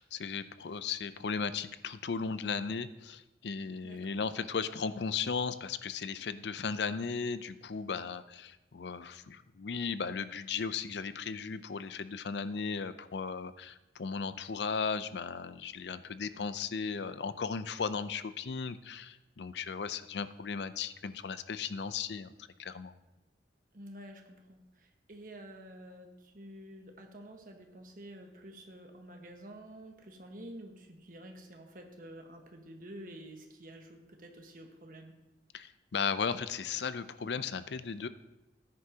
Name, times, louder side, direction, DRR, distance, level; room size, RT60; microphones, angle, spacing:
voice 1, 0.0-22.3 22.6-22.9 35.5-38.1, left 5 dB, 75° left, 13 dB, 0.5 m, -36 dB
voice 2, 3.8-4.2 23.7-35.1, right 1 dB, 50° right, 3 dB, 1.4 m, -49 dB
14.5 x 9.8 x 2.8 m, 1.0 s
head